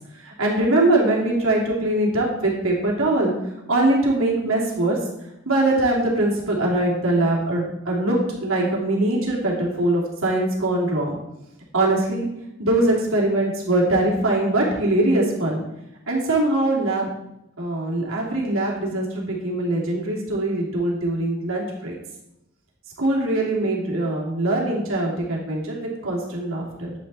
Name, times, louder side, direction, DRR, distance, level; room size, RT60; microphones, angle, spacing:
voice 1, 0.2-3.3 3.7-5.0 5.4-11.2 11.7-12.2 12.6-15.6 16.1-17.1 17.6-22.0 23.0-26.9, right 2 dB, 80° right, -3 dB, 2.9 m, -22 dB
10.5 x 9.0 x 4.2 m, 0.88 s
head